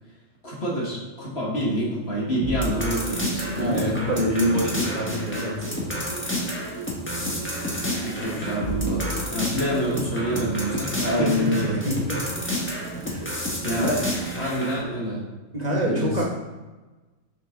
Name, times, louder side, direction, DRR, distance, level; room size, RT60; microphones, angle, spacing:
voice 1, 0.4-4.0 8.0-11.7 13.6-14.0 14.3-15.2 15.8-16.2, right 1 dB, 50° left, -4 dB, 1.7 m, -27 dB
sound 1, 2.3-14.6, right 7 dB, 75° right, 1.2 m, -39 dB
sound 2, 2.4-14.8, left 1 dB, 10° left, 1.3 m, -30 dB
voice 2, 3.5-5.8 9.7-9.9 10.9-12.2 13.0-13.4 13.7-14.0 15.5-16.2, equal, 30° right, -2 dB, 1.4 m, -25 dB
sound 3, 4.7-4.9 5.2-6.4 6.8-7.4 7.7-9.4 9.7-11.5 11.8-13.7, equal, 85° left, 3.0 m, -45 dB
7.2 x 5.8 x 3.7 m, 1.2 s
omnidirectional pair, 1.4 m